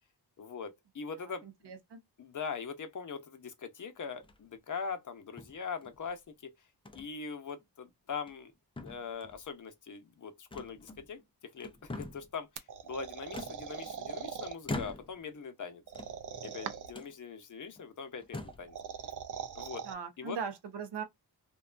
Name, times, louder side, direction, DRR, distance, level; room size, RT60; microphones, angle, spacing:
voice 1, 0.4-1.7 2.2-6.5 6.9-8.5 8.8-15.8 16.4-18.8 19.5-19.8 20.2-20.4, left 5 dB, 50° left, 0.7 m, -42 dB
voice 2, 1.4-2.0 19.8-21.0, right 6 dB, 80° right, 0.7 m, -39 dB
sound 1, 4.1-4.6 5.4-6.1 6.9-7.1 7.5-7.6 8.1-8.5 8.8-9.5 10.5-11.2 11.6-12.4 13.3-14.2 14.6-15.3 15.9-16.5 16.9-17.1 17.8-17.9 18.2-18.7, left 2 dB, 15° left, 0.3 m, -43 dB
sound 2, 12.6-14.6 15.9-17.0 18.5-19.9, right 7 dB, 50° right, 0.4 m, -41 dB
2.6 x 2.2 x 2.4 m
wide cardioid pair, 95°, 41 cm